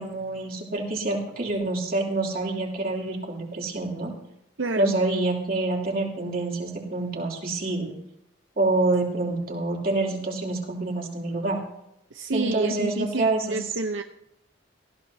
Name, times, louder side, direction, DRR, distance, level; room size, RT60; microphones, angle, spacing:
voice 1, 0.0-4.1 4.8-7.9 8.6-11.6 12.3-13.6, right 2 dB, 50° right, 0 dB, 3.0 m, -27 dB
voice 2, 4.6-4.9 12.1-14.0, right 3 dB, 85° right, 6 dB, 0.8 m, -29 dB
18.5 x 15.0 x 2.8 m, 0.81 s
head